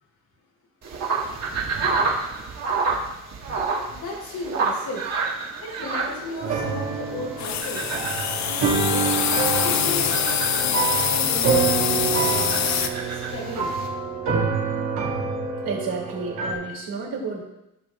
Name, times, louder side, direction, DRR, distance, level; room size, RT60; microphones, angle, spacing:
sound 1, 0.8-13.9, right 4 dB, 50° right, 1.8 m, -30 dB
voice 1, 3.9-5.2 5.6-7.9 8.4-9.2 9.6-12.7 13.0-13.7, left 2 dB, 90° left, -4 dB, 3.5 m, -35 dB
sound 2, 6.4-16.5, right 5 dB, 65° right, 2.3 m, -27 dB
sound 3, 7.4-12.9, left 9 dB, 55° left, 0.7 m, -24 dB
voice 2, 15.6-17.4, right 4 dB, 80° right, -2 dB, 2.9 m, -30 dB
15.5 x 6.1 x 2.5 m, 0.90 s
cardioid pair, 105°, 34 cm